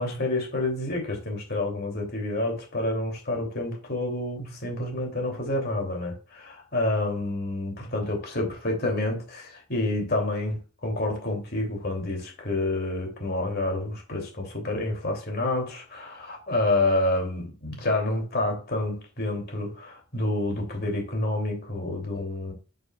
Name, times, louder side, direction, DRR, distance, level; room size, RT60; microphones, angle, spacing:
voice 1, 0.0-22.5, left 2 dB, 45° left, 3.0 m, -28 dB
9.0 x 6.6 x 2.4 m
head